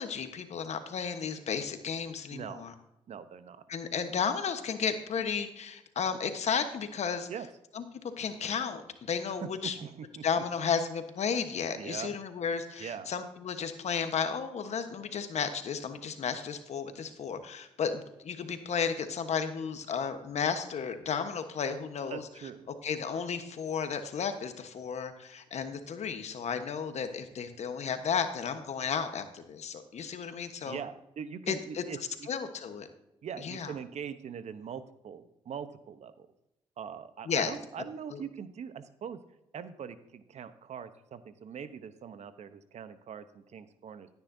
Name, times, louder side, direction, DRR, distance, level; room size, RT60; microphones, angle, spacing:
voice 1, 0.0-2.7 3.7-7.3 7.7-7.8 8.2-9.8 10.2-22.2 22.8-30.8 31.5-31.8 32.3-32.9 33.4-33.7 37.2-37.5 38.1-38.2, left 6 dB, 65° left, 8 dB, 1.2 m, -33 dB
voice 2, 2.3-2.7 3.1-3.6 7.3-7.5 9.4-10.2 11.8-12.2 12.8-13.1 16.9-17.0 22.1-22.7 30.0-30.1 30.7-32.3 33.2-36.3 36.8-39.2 39.5-44.1, right 7 dB, 65° right, 12 dB, 0.9 m, -42 dB
14.5 x 9.6 x 2.7 m, 0.87 s
supercardioid pair, 50°, 12 cm